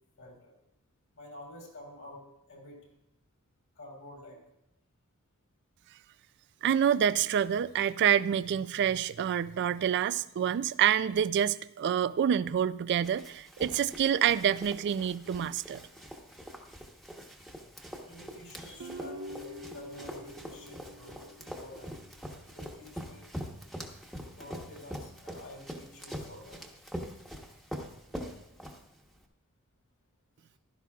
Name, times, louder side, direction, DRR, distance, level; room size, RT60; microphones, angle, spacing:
voice 1, 0.2-0.5 1.1-2.8 3.8-4.4 17.9-21.9 22.5-23.3 24.3-26.6, left 1 dB, 60° left, -1 dB, 3.7 m, -49 dB
voice 2, 6.6-15.8, right 9 dB, 50° right, 15 dB, 0.3 m, -27 dB
Run, 13.0-29.2, equal, ahead, 1.1 m, -44 dB
Guitar, 18.8-22.1, equal, 90° right, 1.0 m, -45 dB
15.0 x 12.5 x 2.4 m, 0.85 s
head